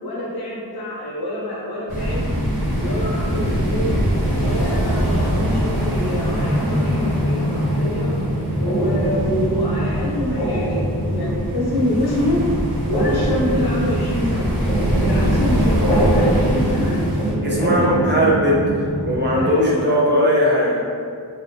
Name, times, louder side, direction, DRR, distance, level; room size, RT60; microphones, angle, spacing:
voice 1, 0.0-2.3 2.8-4.0 4.4-8.1 8.6-12.4 12.9-14.5 15.0-17.0 17.5-18.3 19.3-20.0, left 1 dB, 60° left, -5 dB, 0.7 m, -26 dB
sound 1, 1.9-17.3, equal, 60° right, 1.2 m, -24 dB
sound 2, 2.3-19.5, equal, 10° left, 0.8 m, -24 dB
voice 2, 17.4-20.8, equal, 25° right, -4 dB, 0.5 m, -19 dB
3.1 x 2.5 x 2.5 m, 2.3 s
wide cardioid pair, 100°, 42 cm